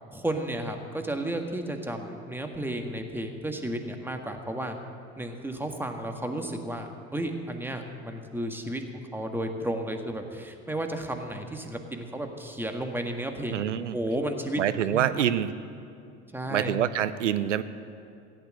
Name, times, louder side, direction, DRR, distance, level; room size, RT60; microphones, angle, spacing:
voice 1, 0.1-4.8 5.2-13.6 13.9-15.1 16.3-16.7, right 1 dB, 5° right, 4 dB, 1.7 m, -33 dB
voice 2, 13.5-14.0 14.6-15.5 16.5-17.6, right 10 dB, 90° right, 13 dB, 0.6 m, -26 dB
15.5 x 8.9 x 7.6 m, 2.6 s
hypercardioid pair, 65°, 35 cm